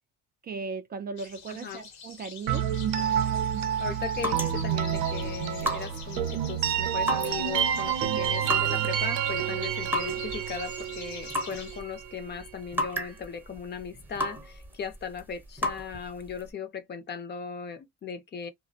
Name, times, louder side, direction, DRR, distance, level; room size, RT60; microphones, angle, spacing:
voice 1, 0.4-2.7, right 4 dB, 35° right, 0.4 m, -37 dB
sound 1, 1.2-11.8, left 6 dB, 70° left, 0.9 m, -46 dB
voice 2, 1.5-1.8 3.8-18.5, left 7 dB, 35° left, 0.6 m, -38 dB
sound 2, 2.5-12.2, right 9 dB, 90° right, 0.6 m, -29 dB
sound 3, 3.0-16.5, equal, 5° right, 0.7 m, -36 dB
2.5 x 2.0 x 2.6 m
cardioid pair, 100°, 29 cm